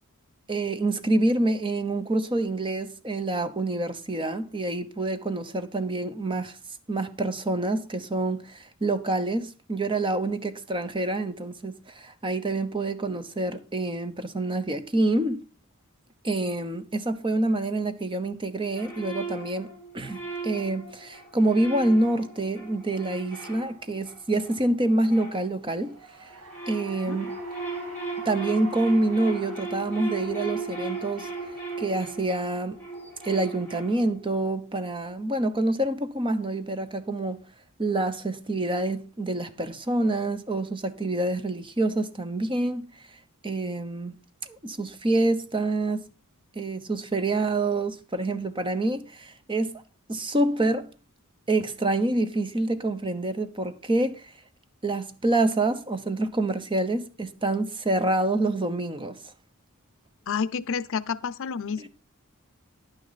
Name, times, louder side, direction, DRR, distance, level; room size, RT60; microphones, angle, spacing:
voice 1, 0.5-6.6 6.9-15.4 16.2-25.9 26.2-26.3 26.7-27.3 28.2-31.3 31.8-32.8 33.2-37.4 37.8-42.9 43.4-44.1 44.5-46.1 46.5-49.8 50.1-50.9 51.5-54.2 54.8-59.2 61.8-61.9, right 2 dB, 25° right, 1.0 m, -27 dB
sound 1, 18.7-26.0 26.3-34.3, right 3 dB, 10° left, 5.0 m, -37 dB
Cheering / Applause, 25.6-32.3, right 2 dB, 85° right, 2.4 m, -48 dB
voice 2, 60.3-61.9, left 6 dB, 65° left, 0.6 m, -29 dB
11.0 x 9.7 x 4.1 m
head